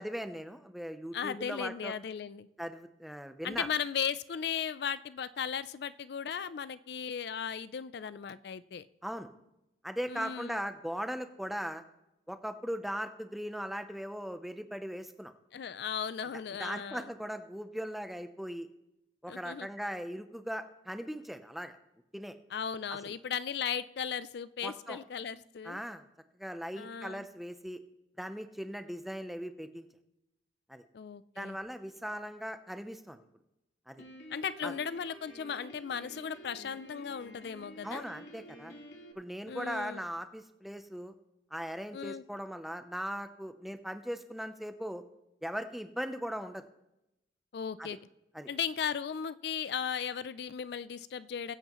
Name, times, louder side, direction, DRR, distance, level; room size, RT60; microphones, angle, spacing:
voice 1, 0.0-1.9 2.6-3.7 9.0-9.3 9.8-11.8 12.3-15.3 16.6-18.7 19.2-21.8 22.1-22.3 23.0-23.1 24.6-25.0 25.6-26.0 26.4-27.8 28.2-29.9 30.7-30.8 31.4-33.2 33.9-34.0 34.6-34.7 37.8-38.7 39.2-41.1 41.5-45.0 45.4-46.6 47.8-47.9 48.3-48.5, equal, ahead, 8 dB, 0.6 m, -39 dB
voice 2, 1.1-2.5 3.4-8.9 10.1-10.6 15.5-17.1 19.3-19.7 22.5-25.8 26.8-27.2 30.9-31.6 34.3-38.0 39.5-40.0 41.9-42.2 47.5-48.0 48.5-51.5, left 7 dB, 65° left, 15 dB, 0.4 m, -36 dB
Piano, 34.0-39.1, equal, 85° left, 2.1 m, -50 dB
21.0 x 8.1 x 3.0 m, 0.89 s
head